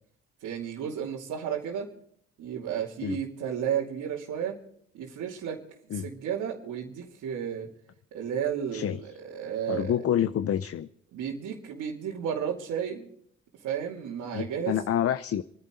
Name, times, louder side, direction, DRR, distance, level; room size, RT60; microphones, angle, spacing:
voice 1, 0.4-1.9 2.4-4.6 4.9-5.6 5.9-7.7 8.1-9.9 11.1-13.1 13.6-14.9, right 8 dB, 85° right, -4 dB, 2.8 m, -33 dB
voice 2, 9.7-10.9 14.3-15.4, left 10 dB, 50° left, 13 dB, 0.6 m, -28 dB
28.0 x 11.0 x 3.9 m, 0.68 s
cardioid pair, 90°, 30 cm